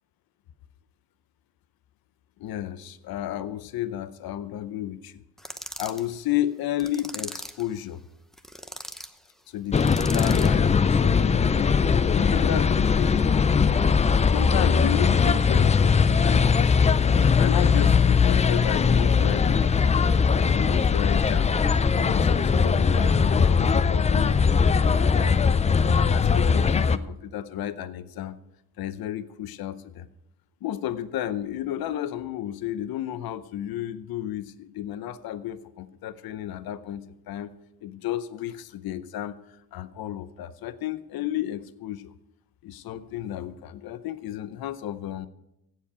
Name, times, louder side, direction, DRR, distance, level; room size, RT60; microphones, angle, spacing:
voice 1, 2.4-5.2 5.8-8.0 9.5-16.9 17.3-20.0 20.4-21.5 21.9-25.4 25.8-28.4 28.8-30.1 30.6-37.5 37.8-42.1 42.6-45.3, left 12 dB, 65° left, 15 dB, 0.7 m, -33 dB
sound 1, 5.4-6.1 6.8-7.7 8.3-9.1 9.8-10.6, equal, ahead, 0.8 m, -39 dB
sound 2, 9.7-27.0, left 5 dB, 20° left, 0.3 m, -20 dB
16.0 x 7.5 x 4.9 m, 0.86 s
cardioid pair, 105°, 39 cm